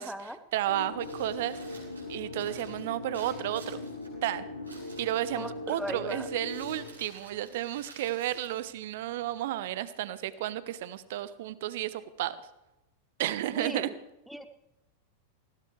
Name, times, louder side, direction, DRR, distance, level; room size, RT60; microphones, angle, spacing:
voice 1, 0.0-0.4 5.4-6.3 13.6-13.9 14.3-14.5, equal, ahead, 10 dB, 1.2 m, -38 dB
voice 2, 0.5-1.8 2.1-3.8 4.2-4.4 5.0-12.4 13.2-13.9, right 13 dB, 55° right, 16 dB, 1.0 m, -32 dB
sound 1, 0.7-6.9, left 2 dB, 90° left, 2.3 m, -40 dB
Crumpling crinkling, 1.0-9.4, right 3 dB, 80° right, 6.0 m, -54 dB
20.0 x 17.0 x 3.3 m, 0.95 s
figure-of-eight pair, 90°, 0 cm